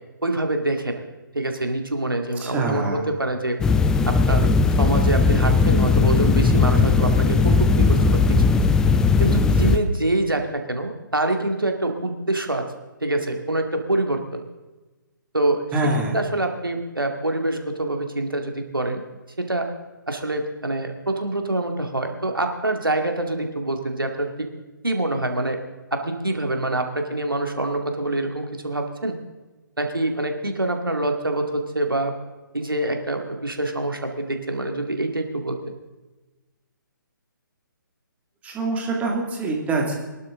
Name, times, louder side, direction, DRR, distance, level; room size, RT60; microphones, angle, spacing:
voice 1, 0.2-1.0 1.3-3.6 4.1-8.4 9.2-12.6 13.0-14.4 15.3-15.7 16.1-19.0 19.4-19.7 20.1-24.3 24.8-25.6 25.9-29.2 29.8-32.1 32.5-35.7, right 2 dB, 85° right, 4 dB, 2.3 m, -25 dB
voice 2, 2.4-3.0 15.7-16.2 38.4-39.9, right 2 dB, 10° right, 0 dB, 2.4 m, -24 dB
sound 1, 3.6-9.8, left 4 dB, 5° left, 0.4 m, -18 dB
21.5 x 12.0 x 3.8 m, 1.2 s
figure-of-eight pair, 135°, 11 cm